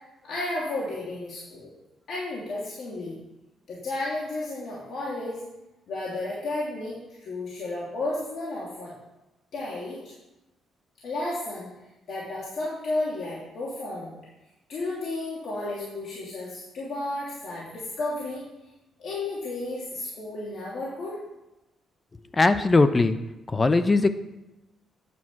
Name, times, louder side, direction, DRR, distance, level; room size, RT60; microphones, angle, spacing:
voice 1, 0.2-1.7 2.1-3.2 3.7-5.4 5.9-8.9 9.5-10.1 11.0-11.7 12.1-14.1 14.7-18.4 19.0-21.2, left 2 dB, 65° left, -6 dB, 2.9 m, -32 dB
voice 2, 22.3-23.1 23.5-24.2, left 3 dB, 25° left, 11 dB, 0.7 m, -20 dB
9.5 x 6.2 x 7.4 m, 0.97 s
cardioid pair, 90°, 0 cm